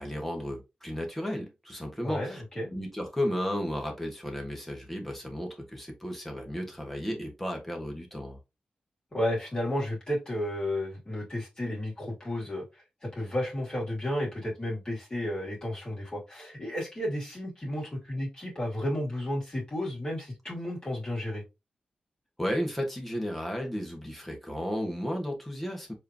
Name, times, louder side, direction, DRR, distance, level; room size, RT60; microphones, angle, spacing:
voice 1, 0.0-2.4 2.7-8.4 22.4-25.9, equal, 10° left, 1.6 m, -33 dB
voice 2, 2.0-2.7 9.1-12.6 13.0-21.4, left 1 dB, 30° left, 2.8 m, -32 dB
4.7 x 3.2 x 2.9 m
wide cardioid pair, 90°, 3 cm